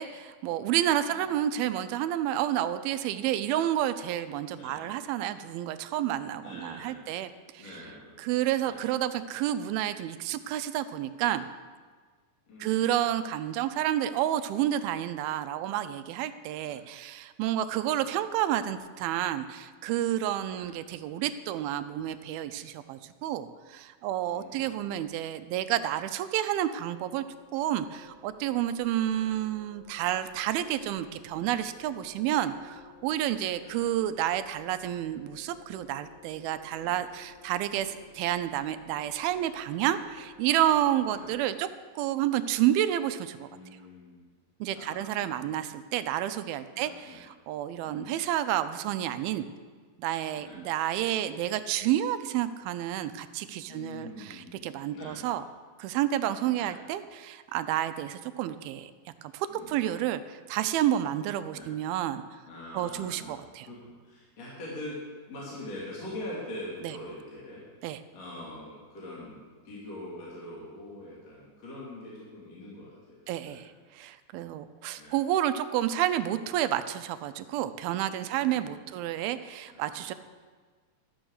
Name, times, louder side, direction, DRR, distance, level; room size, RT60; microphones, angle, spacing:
voice 1, 0.0-7.6 8.2-11.5 12.6-27.2 27.5-41.7 42.0-43.5 44.6-49.5 50.0-55.4 55.8-58.9 59.2-62.3 62.7-63.7 66.8-66.9 67.8-68.0 73.3-80.1, right 12 dB, 85° right, 11 dB, 2.5 m, -30 dB
voice 2, 1.0-1.4 4.5-4.8 6.4-7.1 7.6-8.2 8.6-8.8 12.5-13.2 16.6-16.8 17.8-18.2 20.5-20.7 24.2-24.9 29.1-29.2 33.6-33.8 34.8-35.3 36.8-37.0 37.7-37.9 41.1-41.3 43.4-44.3 44.7-45.0 45.3-45.6 46.7-47.2 47.8-48.2 50.3-50.6 53.7-54.6 54.9-55.2 56.5-56.7 59.5-59.7 61.5-61.7 62.4-65.0 65.3-67.6 68.1-73.7 75.0-75.2 78.2-78.9 79.6-80.0, left 1 dB, 45° left, -7 dB, 3.4 m, -44 dB
sound 1, 26.7-41.4, left 5 dB, 80° left, 3.4 m, -56 dB
13.0 x 6.9 x 6.3 m, 1.5 s
omnidirectional pair, 4.3 m